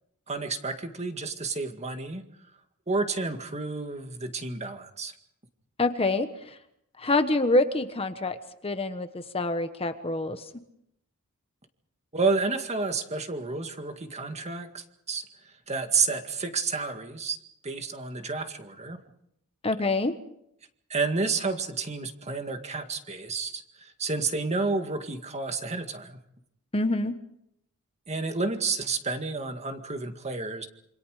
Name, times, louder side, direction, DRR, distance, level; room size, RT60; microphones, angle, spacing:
voice 1, 0.3-2.3 2.9-5.1 12.1-15.2 15.7-17.4 17.6-19.0 20.9-26.2 28.1-30.7, right 4 dB, 30° right, 6 dB, 2.0 m, -30 dB
voice 2, 5.8-6.3 7.0-8.4 8.6-10.4 19.6-20.1 26.7-27.1, left 2 dB, 25° left, 9 dB, 1.3 m, -26 dB
27.0 x 26.0 x 5.0 m, 0.76 s
head